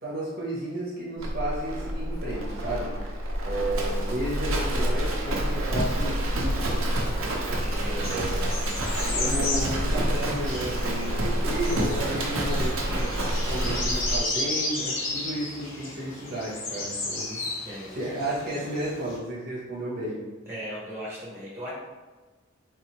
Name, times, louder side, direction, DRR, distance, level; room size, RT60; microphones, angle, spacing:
voice 1, 0.0-6.9 7.8-8.4 9.1-13.1 13.4-17.4 17.9-20.2, right 1 dB, 45° right, -7 dB, 0.9 m, -33 dB
Livestock farm animals working animals, 1.2-14.2, right 1 dB, 70° right, 0.7 m, -28 dB
voice 2, 7.6-8.3 8.6-9.3 17.6-18.0 20.5-21.7, equal, 10° right, -7 dB, 1.1 m, -39 dB
sound 1, 8.0-19.2, left 2 dB, 65° left, 0.8 m, -34 dB
3.9 x 2.8 x 3.0 m, 1.3 s
head